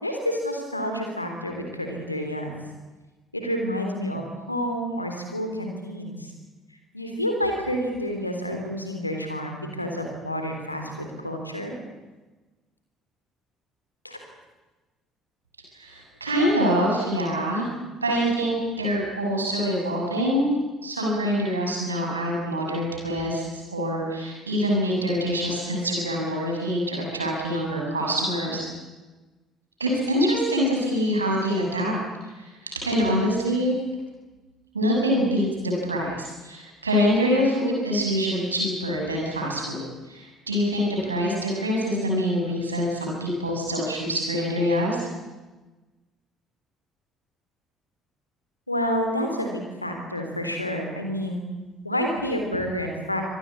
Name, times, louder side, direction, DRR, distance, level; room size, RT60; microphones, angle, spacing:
voice 1, 0.0-2.5 3.3-6.3 6.9-11.7 14.0-14.2 48.7-51.4 51.8-53.2, equal, 90° left, 4 dB, 3.5 m, -29 dB
voice 2, 15.7-17.7 18.0-20.5 20.8-28.7 29.8-32.0 32.2-33.7 34.7-45.1, equal, 85° right, -1 dB, 6.6 m, -25 dB
25.5 x 19.0 x 8.5 m, 1.2 s
figure-of-eight pair, 50°, 0 cm